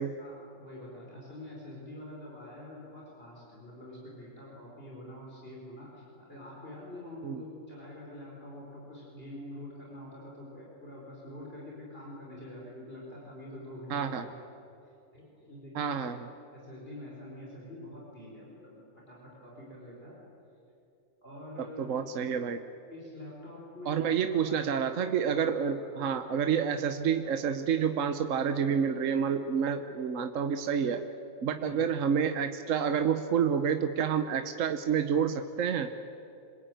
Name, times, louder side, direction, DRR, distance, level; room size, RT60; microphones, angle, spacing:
voice 1, 0.2-14.4 14.8-16.0 16.5-18.8 19.1-20.2 21.2-21.9 22.9-24.7 25.6-25.7 26.0-26.2 31.6-31.8, left 1 dB, 45° left, -4 dB, 5.3 m, -46 dB
voice 2, 13.9-14.3 15.7-16.2 21.6-22.6 23.9-31.1 31.4-35.9, right 7 dB, 70° right, 8 dB, 1.3 m, -29 dB
26.5 x 21.5 x 9.2 m, 2.7 s
omnidirectional pair, 1.4 m